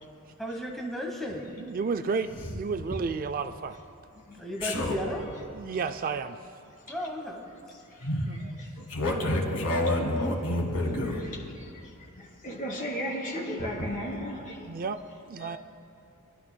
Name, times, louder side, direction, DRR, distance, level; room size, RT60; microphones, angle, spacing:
voice 1, 0.4-1.6 4.4-5.3 6.9-7.5, equal, ahead, -1 dB, 1.2 m, -34 dB
voice 2, 1.6-3.8 5.5-6.4 8.3-8.6 14.6-15.0 15.3-15.6, right 5 dB, 40° right, 10 dB, 0.4 m, -32 dB
voice 3, 4.6-5.0 8.0-8.2 8.9-11.2, left 1 dB, 80° left, -1 dB, 2.6 m, -28 dB
voice 4, 11.6-14.7 15.4-15.6, equal, 35° left, -3 dB, 2.9 m, -35 dB
28.0 x 11.5 x 2.2 m, 2.5 s
head